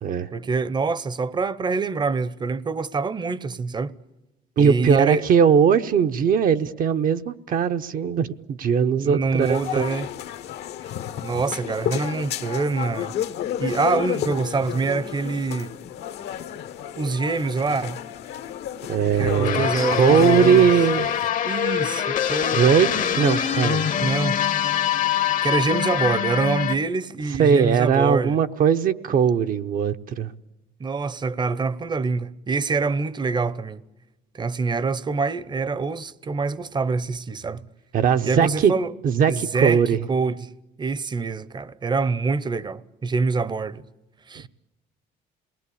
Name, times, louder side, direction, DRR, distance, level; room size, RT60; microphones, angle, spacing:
voice 1, 0.3-3.9 4.6-5.2 9.0-10.1 11.2-13.1 13.6-15.7 17.0-18.0 19.2-20.7 21.4-23.3 24.0-24.4 25.4-28.4 30.8-33.8 34.3-37.6 38.2-38.9 39.3-39.8 40.1-40.5 40.8-43.9 44.3-44.5, right 4 dB, 25° right, 0.8 m, -25 dB
voice 2, 4.6-9.9 18.9-21.1 22.5-23.9 27.4-30.3 37.9-38.7 39.0-40.0, right 7 dB, 55° right, 0.8 m, -20 dB
sound 1, 9.4-21.3, left 11 dB, 75° left, 1.3 m, -32 dB
sound 2, 19.4-26.7, left 9 dB, 50° left, 0.9 m, -24 dB
27.0 x 20.0 x 8.5 m
cardioid pair, 110°, 17 cm